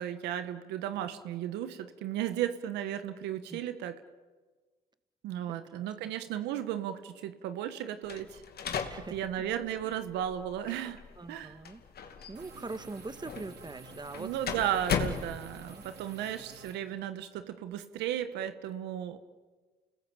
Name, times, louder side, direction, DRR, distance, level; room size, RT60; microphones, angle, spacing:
voice 1, 0.0-4.0 5.2-8.4 9.1-11.0 11.3-11.6 14.1-19.2, right 11 dB, 90° right, 10 dB, 1.4 m, -35 dB
voice 2, 5.5-5.9 8.9-9.2 9.8-9.9 11.2-14.4 15.4-15.8, right 3 dB, 25° right, 11 dB, 1.7 m, -43 dB
sound 1, 8.0-15.9, left 6 dB, 65° left, 2.7 m, -38 dB
sound 2, 12.3-16.7, right 3 dB, 75° right, 4.3 m, -51 dB
30.0 x 20.0 x 8.8 m, 1.3 s
supercardioid pair, 60°, 17 cm